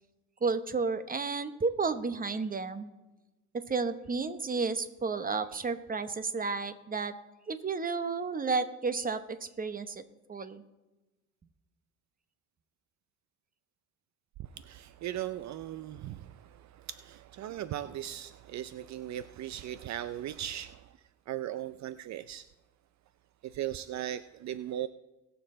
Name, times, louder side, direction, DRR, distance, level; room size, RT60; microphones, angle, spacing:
voice 1, 0.4-2.9 3.7-7.1 7.5-10.0 10.3-10.6, right 4 dB, 30° right, 11 dB, 1.1 m, -32 dB
voice 2, 14.6-16.3 16.9-20.8 21.3-22.4 23.5-24.9, right 12 dB, 65° right, 14 dB, 0.5 m, -38 dB
20.5 x 7.1 x 3.8 m, 1.1 s
cardioid pair, 90°, 30 cm